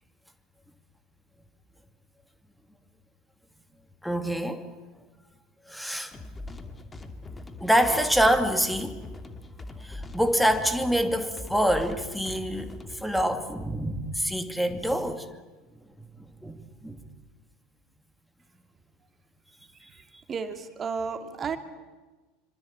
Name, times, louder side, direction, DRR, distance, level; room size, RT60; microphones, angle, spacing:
voice 1, 4.0-4.6 5.7-6.1 7.6-9.0 9.8-15.2 16.4-16.5 16.8-17.0, equal, ahead, 7 dB, 2.7 m, -26 dB
sound 1, 6.1-13.2, left 2 dB, 15° left, 2.8 m, -41 dB
voice 2, 20.3-21.6, right 5 dB, 30° right, 8 dB, 2.8 m, -32 dB
26.0 x 26.0 x 8.9 m, 1.3 s
figure-of-eight pair, 75°, 0 cm